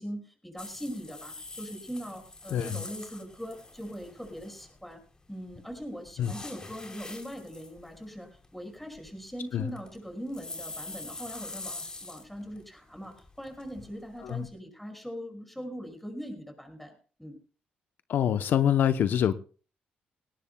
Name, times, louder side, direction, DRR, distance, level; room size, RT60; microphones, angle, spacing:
voice 1, 0.0-5.0 5.3-17.4, equal, 5° left, 5.4 m, -41 dB
sound 1, 0.6-4.9 5.5-12.6 13.0-14.5, left 2 dB, 20° left, 3.0 m, -44 dB
voice 2, 2.5-2.8 6.2-6.3 9.5-9.7 14.2-14.5 18.1-19.3, left 9 dB, 70° left, 0.7 m, -25 dB
19.5 x 17.5 x 2.2 m
cardioid pair, 85°, 3 cm